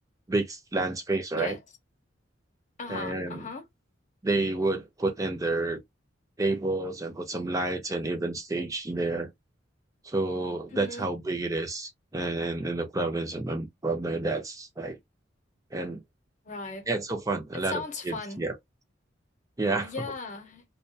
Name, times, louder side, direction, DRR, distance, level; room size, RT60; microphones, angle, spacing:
voice 1, 0.3-1.6 2.9-3.5 4.2-5.8 6.4-9.3 10.0-15.0 15.7-16.0 16.9-18.5 19.6-20.0, right 2 dB, 20° right, 0.5 m, -30 dB
voice 2, 2.8-3.6 10.7-11.1 16.4-16.9 17.5-18.4 19.8-20.6, left 3 dB, 40° left, 0.8 m, -37 dB
2.3 x 2.2 x 2.6 m
head